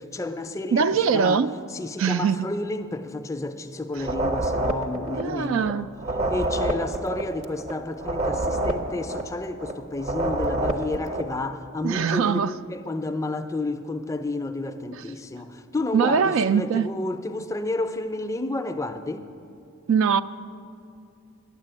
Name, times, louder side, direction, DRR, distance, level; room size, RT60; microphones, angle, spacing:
voice 1, 0.0-1.4 1.7-5.6 6.3-19.3, left 2 dB, 15° left, 0.4 m, -31 dB
voice 2, 0.7-1.5 2.0-2.4 4.0-4.1 5.2-5.9 11.8-12.5 14.9-15.0 15.9-16.9 19.9-20.2, right 6 dB, 65° right, 0.3 m, -22 dB
sound 1, 4.0-5.7 6.0-9.7 10.0-11.3, right 1 dB, 30° right, 0.6 m, -27 dB
9.6 x 7.5 x 8.8 m
head